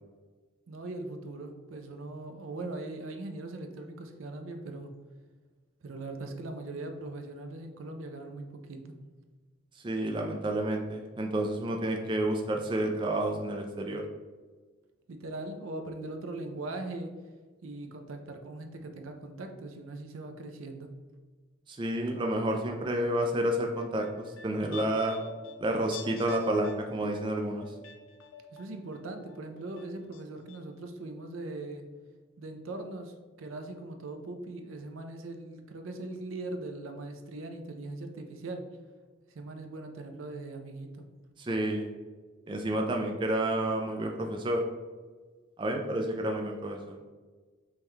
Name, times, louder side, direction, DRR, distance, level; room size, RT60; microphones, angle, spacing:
voice 1, 0.7-4.9 5.8-8.9 15.1-17.1 17.6-20.9 28.5-31.8 32.4-38.6 39.3-41.0, right 2 dB, 80° right, 5 dB, 0.5 m, -40 dB
voice 2, 9.8-14.0 21.7-25.2 25.6-27.7 41.4-41.9 42.5-44.6 45.6-47.0, right 1 dB, 25° right, 2 dB, 0.3 m, -30 dB
sound 1, 23.8-29.0 29.3-30.2 30.5-30.6, left 5 dB, 90° left, 0.5 m, -47 dB
5.3 x 2.3 x 3.1 m, 1.4 s
head